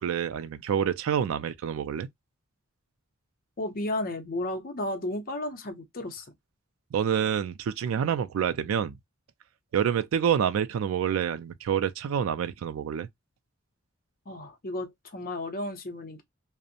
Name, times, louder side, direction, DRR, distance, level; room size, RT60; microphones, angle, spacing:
voice 1, 0.0-2.1 6.9-9.0 9.7-13.1, right 8 dB, 80° right, 0.3 m, -27 dB
voice 2, 3.6-6.3 14.3-16.2, left 1 dB, 45° left, 0.6 m, -33 dB
2.5 x 2.0 x 2.6 m
head